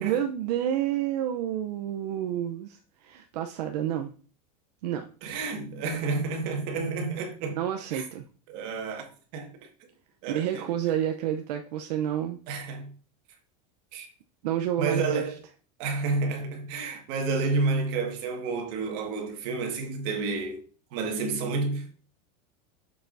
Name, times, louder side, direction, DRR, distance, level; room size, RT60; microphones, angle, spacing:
voice 1, 0.0-4.1 4.8-5.1 7.5-8.2 10.3-12.4 14.4-15.2, right 10 dB, 75° right, 0.7 m, -29 dB
voice 2, 5.2-7.6 7.9-8.0 8.5-9.1 9.3-9.5 10.2-10.7 12.5-12.9 13.9-14.1 14.8-15.3 15.8-20.6 20.9-21.9, right 3 dB, 45° right, 1.7 m, -30 dB
6.9 x 6.7 x 2.6 m
supercardioid pair, 165°, 21 cm